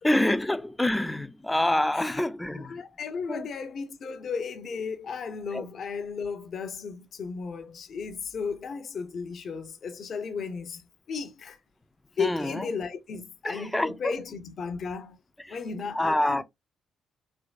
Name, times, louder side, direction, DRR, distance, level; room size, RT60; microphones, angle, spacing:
voice 1, 0.0-2.8 3.3-3.5 5.5-5.7 12.2-12.7 13.4-14.1 15.5-15.6 15.9-16.4, left 1 dB, 10° left, 0.4 m, -26 dB
voice 2, 2.5-11.6 12.2-15.2 15.5-16.4, left 5 dB, 55° left, 0.7 m, -35 dB
3.4 x 3.1 x 2.4 m
hypercardioid pair, 45°, 0 cm